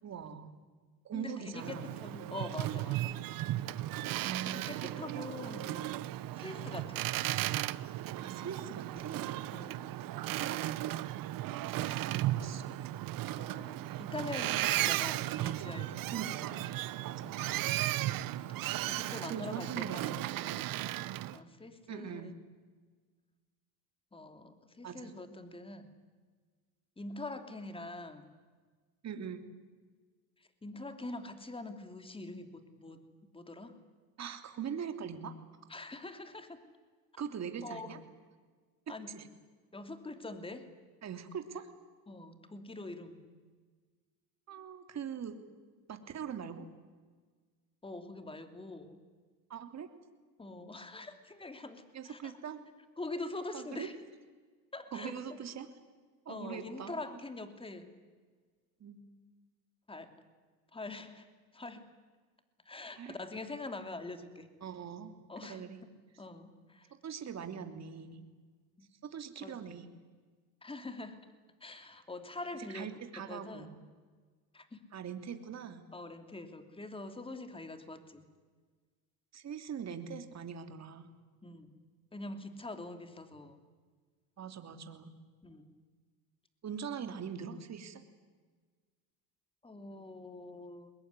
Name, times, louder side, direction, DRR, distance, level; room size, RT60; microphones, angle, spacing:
voice 1, 0.0-0.5 1.0-1.9 4.2-4.9 8.2-9.3 10.4-10.8 11.7-12.8 16.1-16.6 17.0-17.7 19.2-20.3 21.9-22.3 24.8-25.1 29.0-29.4 34.2-35.3 37.2-38.0 39.1-39.3 41.0-41.7 44.5-45.4 45.9-46.7 49.5-49.9 51.9-52.6 53.5-53.9 54.9-55.7 56.2-57.2 58.8-59.0 63.0-63.2 64.6-65.1 65.4-65.8 67.0-68.2 69.0-69.9 72.7-73.7 74.9-75.8 79.3-81.1 84.4-85.2 86.6-88.0, right 7 dB, 40° right, 7 dB, 3.2 m, -42 dB
voice 2, 1.1-3.1 4.4-6.0 6.4-7.0 9.5-10.0 13.4-16.1 18.8-20.2 20.5-20.7 21.3-22.3 24.1-25.9 27.0-28.3 30.6-33.0 33.3-33.7 35.7-36.6 37.6-38.0 38.9-39.2 39.7-40.7 42.1-43.3 47.8-49.0 50.4-52.4 53.0-53.9 54.7-55.2 56.3-57.9 59.9-60.1 60.7-61.3 61.5-61.9 62.6-64.5 65.3-66.9 68.8-68.9 69.4-69.8 70.6-71.3 71.6-73.7 74.5-74.8 75.9-78.3 81.4-81.8 82.1-83.6 85.4-85.7 89.6-90.9, left 2 dB, 15° left, 8 dB, 3.0 m, -44 dB
Boat Water vehicle, 1.6-21.4, right 15 dB, 60° right, 1.0 m, -35 dB
23.0 x 21.0 x 9.9 m, 1.4 s
supercardioid pair, 100°, 39 cm